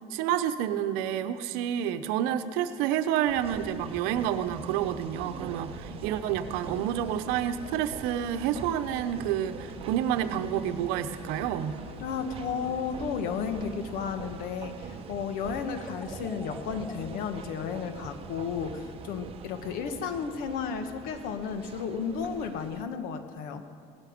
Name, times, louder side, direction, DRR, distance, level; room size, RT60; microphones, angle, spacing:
voice 1, 0.1-11.8, right 10 dB, 80° right, 10 dB, 0.9 m, -29 dB
sound 1, 3.3-22.9, right 6 dB, 40° right, 0.9 m, -43 dB
sound 2, 5.4-14.4, left 6 dB, 85° left, 2.9 m, -49 dB
voice 2, 12.0-23.6, left 6 dB, 70° left, 8 dB, 1.3 m, -33 dB
sound 3, 15.7-18.9, left 2 dB, 15° left, 0.7 m, -48 dB
17.5 x 12.5 x 5.2 m, 2.2 s
cardioid pair, 140°, 16 cm